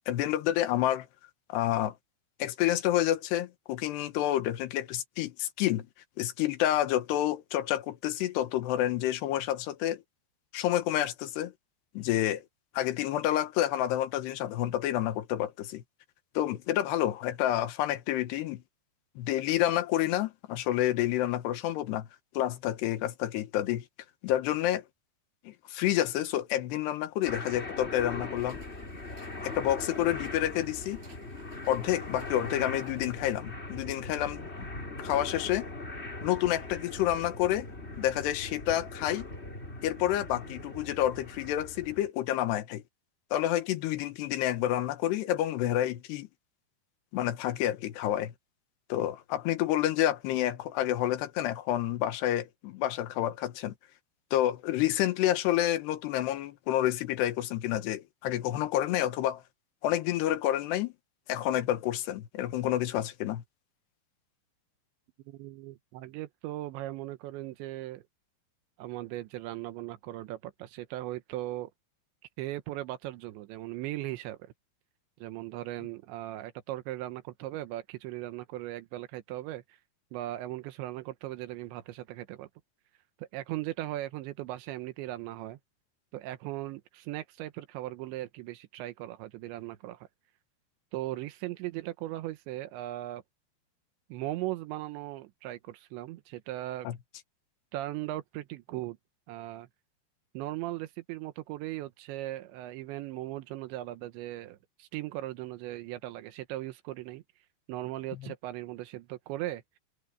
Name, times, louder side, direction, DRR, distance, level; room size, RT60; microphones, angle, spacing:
voice 1, 0.1-1.1 1.5-1.9 2.4-5.9 6.2-10.0 10.5-11.5 11.9-12.4 12.7-15.8 16.3-18.6 19.2-22.1 22.3-23.8 24.2-24.8 25.4-28.6 29.4-31.0 31.7-34.5 35.0-35.7 36.2-37.7 38.0-39.3 39.8-42.8 43.3-46.3 47.1-48.3 48.9-53.7 54.3-59.4 59.8-60.9 61.3-63.4 96.8-97.0 108.2-108.3, left 13 dB, 75° left, 3.2 m, -29 dB
sound 1, 27.2-42.1, left 2 dB, 15° left, 2.9 m, -40 dB
sound 2, 28.4-33.4, right 3 dB, 70° right, 10.5 m, -59 dB
voice 2, 65.3-68.0 68.8-71.7 72.4-74.4 75.2-79.8 80.1-82.5 83.2-85.6 86.1-90.1 90.9-93.2 94.1-96.9 97.7-99.0 99.3-99.7 100.3-107.2 107.7-109.8, right 15 dB, 85° right, 3.3 m, -38 dB
omnidirectional pair, 5.0 m